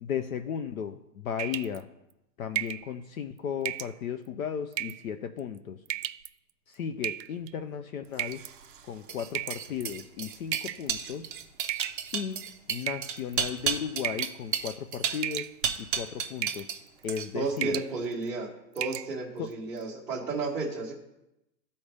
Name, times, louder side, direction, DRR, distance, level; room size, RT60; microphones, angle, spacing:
voice 1, 0.0-1.9 2.4-5.8 6.7-8.4 8.9-11.3 12.1-12.4 12.7-15.5 15.9-16.7 17.0-17.7 19.4-19.5, left 8 dB, 60° left, 8 dB, 0.5 m, -35 dB
sound 1, 1.4-1.8 2.6-2.9 3.7-3.9 4.7-5.1 5.9-6.3 7.0-7.5 8.2-8.5 9.4-9.9 10.5-10.9 11.7-12.3 12.8-13.5 14.0-14.4 14.7-14.9 15.2-15.8 16.4-16.7 17.0-17.3 17.6-17.9 18.3-18.4 18.8-19.1, right 13 dB, 90° right, 0.6 m, -34 dB
sound 2, 8.3-16.8 17.1-17.5, right 7 dB, 35° right, 0.5 m, -33 dB
voice 2, 17.3-18.5 18.7-20.9, right 3 dB, 5° right, -12 dB, 0.7 m, -32 dB
12.5 x 4.2 x 3.3 m, 0.89 s
hypercardioid pair, 150°, 49 cm